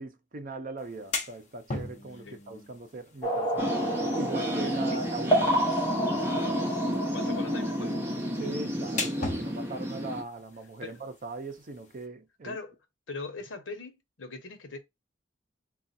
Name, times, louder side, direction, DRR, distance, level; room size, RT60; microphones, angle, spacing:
voice 1, 0.0-3.8 4.2-5.6 8.4-12.6, right 3 dB, 45° right, 0.6 m, -39 dB
sound 1, 0.8-12.1, left 3 dB, 40° left, 0.8 m, -42 dB
sound 2, 3.2-8.6, equal, 20° left, 1.7 m, -30 dB
sound 3, 3.6-10.2, equal, 15° right, 0.8 m, -31 dB
voice 2, 7.1-8.0 10.8-11.0 12.4-12.7 13.1-14.8, left 3 dB, 85° left, 0.9 m, -40 dB
3.6 x 2.3 x 4.1 m
head